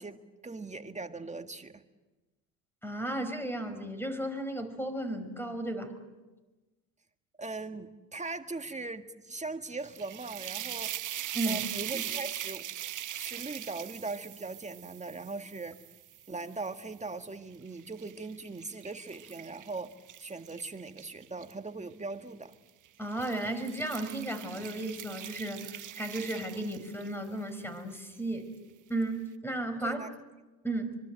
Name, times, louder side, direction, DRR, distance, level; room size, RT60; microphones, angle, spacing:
voice 1, 0.0-1.8 7.4-10.9 11.4-12.7 13.2-15.8 16.3-22.5 29.8-30.1, right 3 dB, 15° right, 7 dB, 1.8 m, -40 dB
voice 2, 2.8-5.9 11.3-11.6 23.0-28.5 28.9-30.0 30.6-31.0, right 1 dB, 5° left, 10 dB, 5.2 m, -34 dB
sound 1, 9.8-17.0 17.5-21.5 22.4-22.7 23.1-27.3, right 11 dB, 40° right, 1.1 m, -41 dB
25.0 x 24.0 x 7.8 m, 1.2 s
hypercardioid pair, 70°, 46 cm